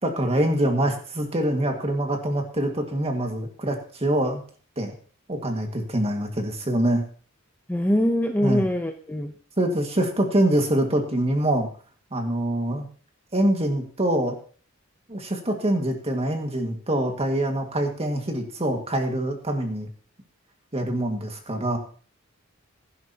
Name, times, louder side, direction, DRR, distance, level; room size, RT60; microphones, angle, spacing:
voice 1, 0.0-4.4 4.8-4.9 5.3-7.0 8.4-8.6 9.6-11.7 12.1-12.9 13.3-14.4 15.1-19.9 20.7-21.8, right 1 dB, 30° right, 3 dB, 2.0 m, -24 dB
voice 2, 7.7-9.3, equal, 10° left, 4 dB, 0.8 m, -23 dB
16.5 x 11.0 x 2.9 m, 0.42 s
head